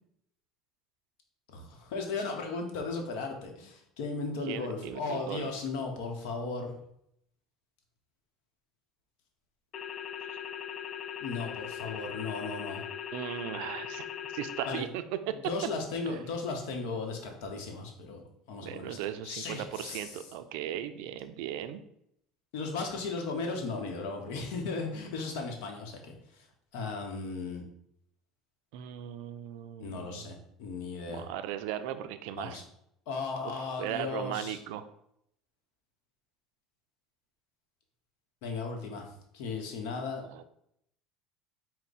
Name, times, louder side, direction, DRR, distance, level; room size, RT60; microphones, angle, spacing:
voice 1, 1.5-6.7 11.2-12.8 14.7-14.8 15.4-18.2 18.5-19.0 19.2-20.2 22.5-26.5 26.7-27.6 29.8-31.3 32.3-32.6 33.1-34.6 38.4-39.1 39.3-40.2, left 4 dB, 75° left, 3 dB, 0.8 m, -36 dB
voice 2, 4.5-5.5 13.1-14.1 14.3-15.4 16.1-16.2 18.6-21.8 28.7-30.3 31.1-32.6 33.4-34.8 40.2-40.4, right 11 dB, 75° right, 10 dB, 0.3 m, -37 dB
sound 1, 9.7-14.8, left 9 dB, 50° left, 0.3 m, -39 dB
4.5 x 2.1 x 4.0 m, 0.74 s
supercardioid pair, 95°, 0 cm